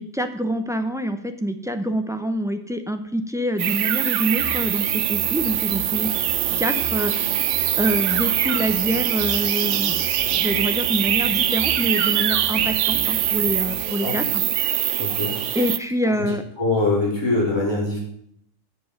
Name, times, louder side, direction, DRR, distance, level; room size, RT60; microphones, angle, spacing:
voice 1, 0.0-6.1 6.6-7.5 7.8-10.0 10.3-15.0 15.5-16.4, equal, 5° right, 7 dB, 0.4 m, -26 dB
sound 1, 3.6-15.8, right 11 dB, 70° right, 0.9 m, -23 dB
sound 2, 4.4-13.8, left 1 dB, 35° left, 2.4 m, -38 dB
voice 2, 13.8-14.1 15.0-15.3 16.2-18.0, left 2 dB, 20° left, -6 dB, 4.2 m, -23 dB
8.0 x 7.0 x 6.6 m, 0.69 s
omnidirectional pair, 1.3 m